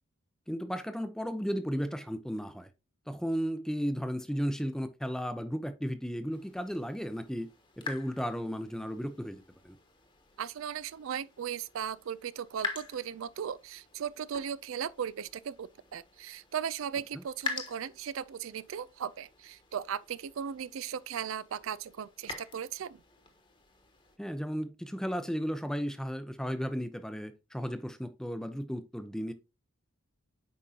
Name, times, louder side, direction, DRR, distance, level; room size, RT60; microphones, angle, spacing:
voice 1, 0.5-2.7 3.1-7.5 7.8-9.8 24.2-29.3, equal, 5° left, 0.5 m, -34 dB
sound 1, 6.3-24.2, left 4 dB, 25° left, 1.2 m, -46 dB
voice 2, 10.4-23.0, right 8 dB, 75° right, 0.4 m, -37 dB
8.6 x 5.2 x 2.8 m
head